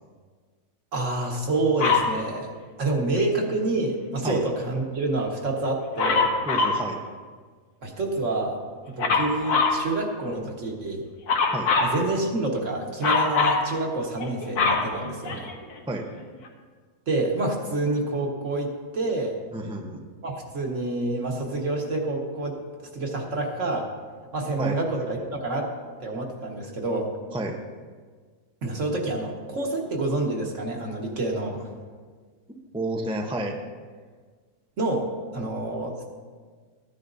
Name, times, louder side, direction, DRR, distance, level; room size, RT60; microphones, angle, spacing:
voice 1, 0.9-2.5 2.8-6.3 7.8-8.6 9.0-11.0 11.8-15.5 17.1-19.3 20.2-22.6 22.9-23.9 24.3-25.7 26.0-27.1 28.6-31.7 34.8-35.1 35.3-36.0, right 2 dB, 50° right, 0 dB, 1.7 m, -27 dB
Dog, 1.8-2.2 6.0-6.8 9.0-9.8 11.3-12.0 13.0-13.7 14.2-15.7 16.5-16.6, left 4 dB, 80° left, 1.6 m, -23 dB
voice 2, 6.4-7.0 11.5-11.7 15.9-16.1 19.5-20.0 24.6-24.8 27.3-27.6 32.7-33.6, right 1 dB, 10° right, 2 dB, 0.3 m, -30 dB
15.0 x 10.0 x 2.6 m, 1.5 s
omnidirectional pair, 1.7 m